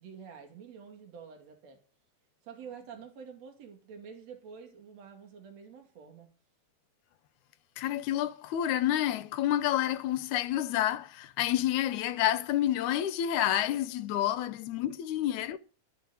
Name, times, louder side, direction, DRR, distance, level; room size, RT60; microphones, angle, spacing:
voice 1, 0.0-1.8 2.4-6.3 14.8-14.9, right 6 dB, 55° right, 3.3 m, -48 dB
voice 2, 7.8-15.6, left 12 dB, 75° left, 2.1 m, -29 dB
14.0 x 6.1 x 8.7 m
omnidirectional pair, 3.6 m